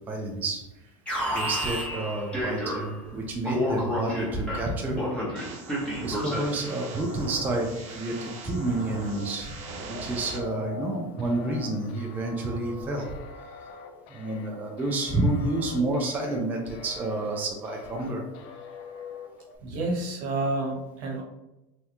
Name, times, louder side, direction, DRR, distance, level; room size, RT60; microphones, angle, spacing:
voice 1, 0.1-0.6 1.3-5.0 6.0-9.5 9.9-13.1 14.1-18.2 19.7-19.8, right 2 dB, 10° right, 0 dB, 0.3 m, -29 dB
Alarm, 1.1-3.1 3.4-6.7, equal, 5° left, 0.9 m, -30 dB
sound 1, 5.4-10.4, right 4 dB, 90° right, 0.6 m, -41 dB
sound 2, 6.6-19.6, left 4 dB, 55° left, 0.4 m, -44 dB
voice 2, 19.6-21.2, right 2 dB, 65° right, 0 dB, 1.0 m, -29 dB
3.3 x 2.3 x 2.8 m, 0.92 s
supercardioid pair, 145°, 18 cm